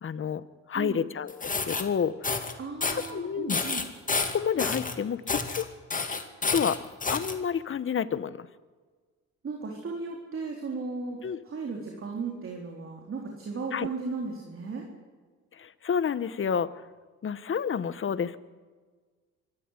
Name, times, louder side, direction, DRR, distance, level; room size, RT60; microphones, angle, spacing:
voice 1, 0.0-2.4 2.9-3.6 4.2-5.7 6.5-6.8 7.1-8.5 11.2-11.4 13.7-13.9 15.6-16.7 17.2-18.4, left 7 dB, 40° left, 15 dB, 1.1 m, -30 dB
sound 1, 1.3-1.8 2.2-2.5 2.8-3.1 3.5-4.9 5.3-5.6 5.9-7.3, left 4 dB, 25° left, 2.4 m, -29 dB
voice 2, 2.6-3.8 9.4-11.2 11.4-14.9, right 4 dB, 45° right, 1 dB, 3.9 m, -35 dB
24.5 x 14.0 x 8.2 m, 1.4 s
cardioid pair, 90°, 30 cm